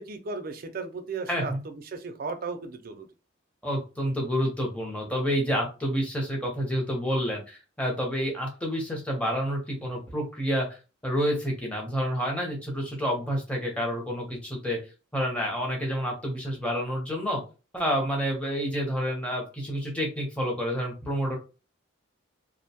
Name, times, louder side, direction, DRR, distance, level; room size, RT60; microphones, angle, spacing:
voice 1, 0.0-3.1, right 4 dB, 45° right, 8 dB, 0.4 m, -36 dB
voice 2, 1.3-1.6 3.6-14.8 15.1-17.4 17.7-21.4, equal, 5° left, 0 dB, 0.6 m, -29 dB
2.5 x 2.1 x 2.8 m, 0.32 s
head